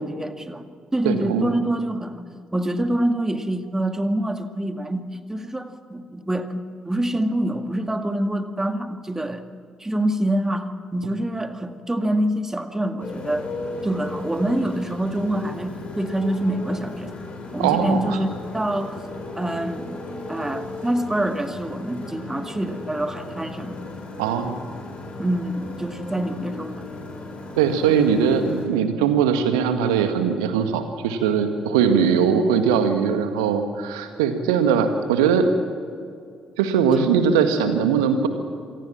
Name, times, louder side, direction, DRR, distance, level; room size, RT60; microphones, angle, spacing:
voice 1, 0.2-0.6 0.9-5.0 5.3-9.4 9.8-13.5 13.8-17.2 17.5-18.9 19.4-19.9 20.3-23.9 25.2-26.8 36.9-37.0, right 1 dB, 15° right, 7 dB, 2.0 m, -26 dB
voice 2, 1.1-1.5 17.6-18.2 24.2-24.6 27.6-35.5 36.6-38.3, right 7 dB, 70° right, 8 dB, 1.9 m, -20 dB
Motorcycle, 13.0-28.7, left 2 dB, 45° left, 7.0 m, -35 dB
27.0 x 19.0 x 7.4 m, 2.3 s
figure-of-eight pair, 40°, 3 cm